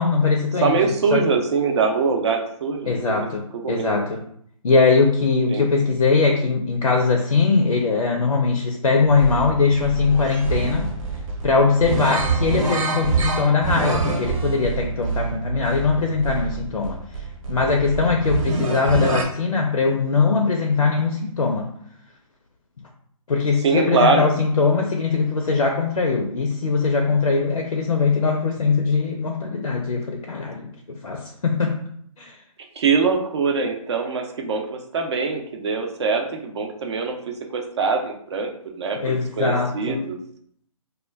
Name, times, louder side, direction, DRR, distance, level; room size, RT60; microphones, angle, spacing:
voice 1, 0.0-0.8 1.1-1.2 2.9-4.2 4.6-10.9 11.4-17.0 17.5-21.7 23.3-31.8 32.2-32.4 38.9-40.0, left 4 dB, 80° left, 2 dB, 0.5 m, -21 dB
voice 2, 0.6-3.3 3.5-4.0 5.5-5.7 23.6-24.3 32.8-38.5 38.8-40.2, right 4 dB, 50° right, 3 dB, 0.6 m, -23 dB
sound 1, 9.0-19.2, right 4 dB, 70° right, 0.9 m, -26 dB
2.2 x 2.2 x 3.2 m, 0.65 s
figure-of-eight pair, 140°, 18 cm